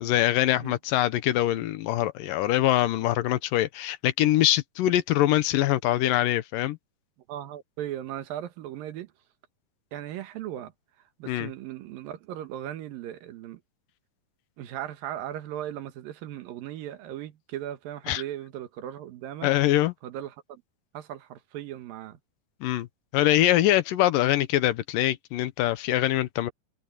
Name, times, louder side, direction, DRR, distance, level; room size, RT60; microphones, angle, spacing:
voice 1, 0.0-6.8 11.3-11.5 18.1-18.2 19.4-19.9 22.6-22.9 23.1-26.5, left 14 dB, 75° left, 2.5 m, -23 dB
voice 2, 7.3-9.1 9.9-13.6 14.6-19.5 20.0-20.6 20.9-22.2, right 11 dB, 85° right, 3.1 m, -37 dB
omnidirectional pair, 4.0 m